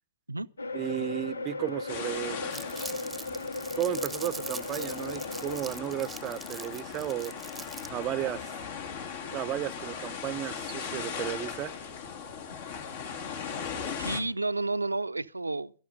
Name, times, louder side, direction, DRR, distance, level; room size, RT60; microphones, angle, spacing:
sound 1, 0.6-5.6, left 2 dB, 80° left, 0.8 m, -36 dB
voice 1, 0.7-2.4 3.8-7.3 7.9-8.5 9.3-11.7, right 13 dB, 30° right, 0.6 m, -34 dB
sound 2, 1.9-14.2, left 6 dB, 60° left, 2.9 m, -39 dB
Crumpling crinkling, 2.5-8.0, right 3 dB, 5° right, 1.0 m, -42 dB
voice 2, 13.9-15.7, right 2 dB, 90° right, 0.6 m, -31 dB
12.0 x 12.0 x 6.5 m
figure-of-eight pair, 115°, 0 cm